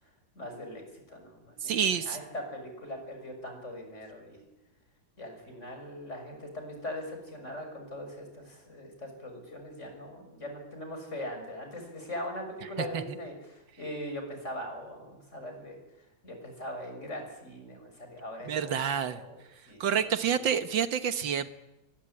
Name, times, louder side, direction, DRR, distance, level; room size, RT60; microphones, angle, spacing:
voice 1, 0.3-4.4 5.2-15.8 16.2-19.4 19.7-20.4, left 1 dB, 35° left, 4 dB, 6.8 m, -41 dB
voice 2, 1.6-2.2 12.9-13.0 18.5-19.2 19.8-21.5, right 8 dB, 80° right, 11 dB, 1.9 m, -28 dB
23.5 x 20.0 x 9.9 m, 0.92 s
omnidirectional pair, 2.0 m